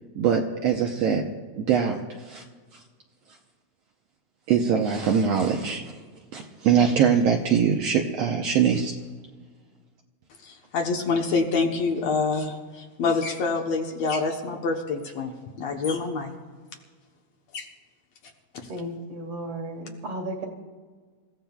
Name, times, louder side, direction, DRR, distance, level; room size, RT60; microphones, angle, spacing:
voice 1, 0.2-1.2 1.6-2.4 4.5-5.9 6.3-9.0, right 7 dB, 70° right, 2 dB, 1.7 m, -22 dB
voice 2, 10.4-16.3 17.5-17.7, left 4 dB, 65° left, 2 dB, 2.0 m, -26 dB
voice 3, 18.7-20.5, right 1 dB, 50° right, 3 dB, 2.5 m, -34 dB
27.5 x 15.5 x 2.3 m, 1.5 s
omnidirectional pair, 3.6 m